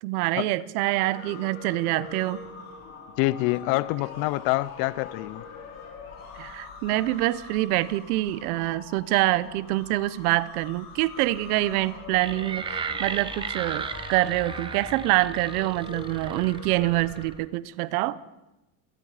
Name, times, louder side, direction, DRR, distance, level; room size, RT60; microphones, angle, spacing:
voice 1, 0.0-2.4 6.3-18.2, right 17 dB, 90° right, 18 dB, 1.0 m, -26 dB
sound 1, 0.8-17.3, left 6 dB, 35° left, 5.1 m, -44 dB
voice 2, 3.2-5.4, left 19 dB, 55° left, 20 dB, 0.7 m, -26 dB
sound 2, 12.2-17.4, right 5 dB, 10° right, 0.6 m, -36 dB
28.0 x 18.5 x 5.0 m, 1.0 s
cardioid pair, 180°, 43 cm